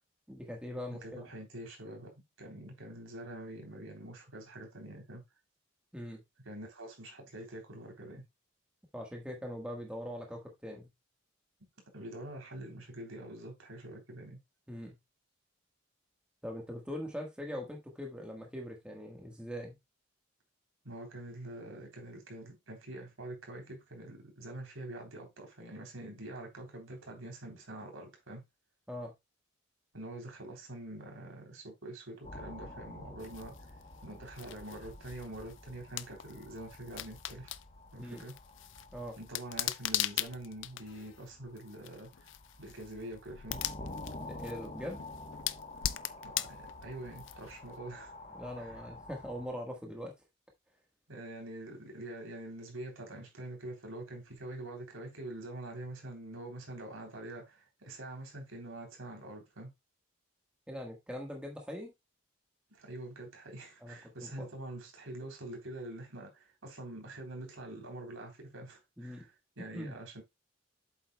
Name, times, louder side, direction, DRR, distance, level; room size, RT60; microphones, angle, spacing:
voice 1, 0.3-1.0 5.9-6.2 8.9-10.9 14.7-15.0 16.4-19.7 28.9-29.1 38.0-38.2 38.9-39.2 44.2-45.0 48.3-50.1 60.7-61.9 63.8-64.5 69.0-69.3 69.6-70.0, equal, 5° right, 1.4 m, -42 dB
voice 2, 0.9-2.1 2.4-5.2 6.4-8.2 11.9-14.4 20.8-28.4 29.9-33.5 34.0-37.5 37.9-38.3 39.2-42.3 42.6-43.6 45.9-46.0 46.2-48.1 48.6-48.8 51.1-59.7 62.7-69.3 69.6-70.2, right 1 dB, 80° right, 3.4 m, -45 dB
sound 1, 32.2-49.5, left 2 dB, 35° left, 1.0 m, -49 dB
sound 2, 33.2-47.7, left 13 dB, 65° left, 0.4 m, -41 dB
8.0 x 7.6 x 2.3 m
head